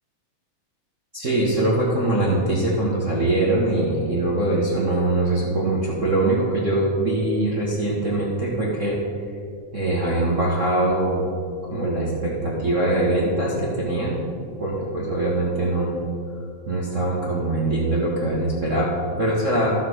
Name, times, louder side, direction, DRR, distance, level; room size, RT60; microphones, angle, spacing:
voice 1, 1.1-9.0 9.7-11.3 11.7-14.2 14.6-16.0 16.7-19.7, right 2 dB, 65° right, -6 dB, 0.7 m, -22 dB
13.5 x 5.8 x 6.2 m, 2.3 s
omnidirectional pair, 3.8 m